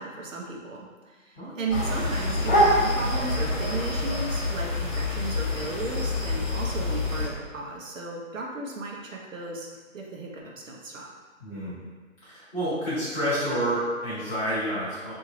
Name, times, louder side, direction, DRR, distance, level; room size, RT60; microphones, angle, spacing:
voice 1, 0.0-9.7 9.9-11.1, right 3 dB, 70° right, -1 dB, 0.8 m, -35 dB
sound 1, 1.7-7.3, left 1 dB, 35° left, 1.4 m, -26 dB
voice 2, 11.4-11.8 12.2-15.1, equal, 10° left, -14 dB, 1.2 m, -29 dB
3.1 x 2.7 x 3.6 m, 1.4 s
hypercardioid pair, 160°, 40 cm